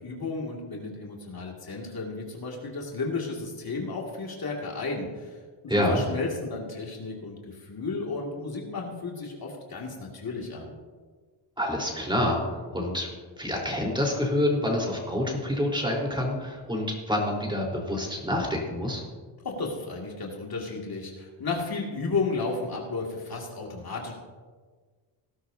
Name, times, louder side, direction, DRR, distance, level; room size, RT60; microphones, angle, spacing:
voice 1, 0.0-5.4 5.6-10.7 19.4-24.1, left 3 dB, 50° left, -1 dB, 2.4 m, -33 dB
voice 2, 5.7-6.0 11.6-13.1 13.4-19.0, left 1 dB, 10° right, -2 dB, 4.0 m, -27 dB
19.0 x 12.0 x 2.8 m, 1.5 s
cardioid pair, 90°, 48 cm